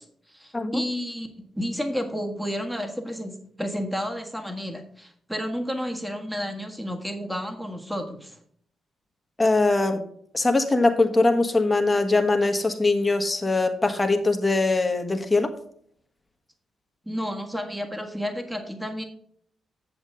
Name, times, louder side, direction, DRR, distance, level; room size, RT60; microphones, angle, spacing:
voice 1, 0.0-8.4 17.0-19.0, equal, 5° right, 4 dB, 1.5 m, -31 dB
voice 2, 9.4-10.0 10.3-15.5, left 2 dB, 20° left, 6 dB, 1.3 m, -22 dB
8.6 x 7.1 x 3.8 m, 0.62 s
cardioid pair, 90°, 0 cm